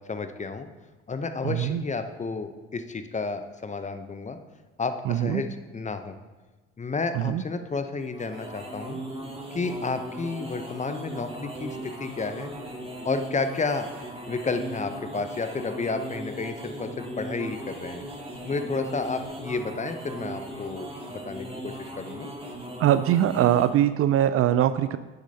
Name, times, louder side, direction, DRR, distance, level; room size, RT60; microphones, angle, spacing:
voice 1, 0.1-0.7 1.1-4.4 4.8-6.1 6.8-9.0 9.5-12.5 13.0-13.9 14.3-18.0 18.4-22.3, left 4 dB, 25° left, 9 dB, 0.7 m, -31 dB
voice 2, 1.4-1.8 5.0-5.4 7.1-7.4 22.8-25.0, right 11 dB, 45° right, 13 dB, 0.4 m, -22 dB
sound 1, 8.0-23.8, right 1 dB, 15° right, 1.9 m, -38 dB
9.7 x 6.6 x 2.8 m, 1.2 s
hypercardioid pair, 55°, 32 cm